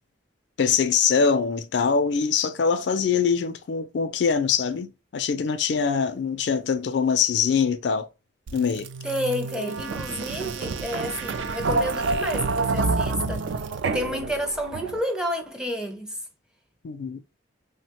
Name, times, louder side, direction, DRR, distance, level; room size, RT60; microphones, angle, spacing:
voice 1, 0.6-8.1 8.5-8.9 16.8-17.2, left 6 dB, 65° left, 0.4 m, -23 dB
sound 1, 8.5-15.2, right 3 dB, 75° right, 0.3 m, -28 dB
voice 2, 9.0-13.5 13.8-16.2, equal, 5° right, 0.4 m, -30 dB
3.2 x 2.1 x 2.8 m
head